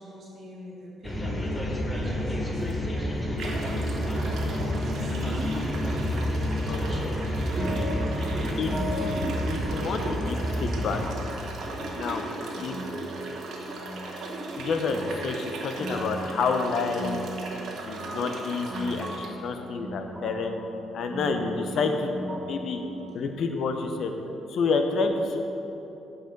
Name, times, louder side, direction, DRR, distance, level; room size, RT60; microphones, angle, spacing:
voice 1, 0.0-5.3 12.5-12.9 21.6-22.0, right 1 dB, 60° right, -5 dB, 1.5 m, -43 dB
sound 1, 1.0-11.1, left 1 dB, 20° left, 1.2 m, -29 dB
sound 2, 2.6-2.7 3.4-19.3, right 2 dB, 75° right, 1.2 m, -37 dB
voice 2, 6.7-7.2 8.6-8.7 9.5-11.0 11.9-12.3 12.6-12.8 14.5-17.2 17.9-20.6 20.9-22.1 22.5-22.8 23.1-24.1 24.5-25.4, left 4 dB, 65° left, 6 dB, 0.7 m, -29 dB
sound 3, 6.8-23.2, right 1 dB, 25° right, 1.3 m, -39 dB
9.0 x 4.9 x 5.2 m, 2.9 s
cardioid pair, 90°, 0 cm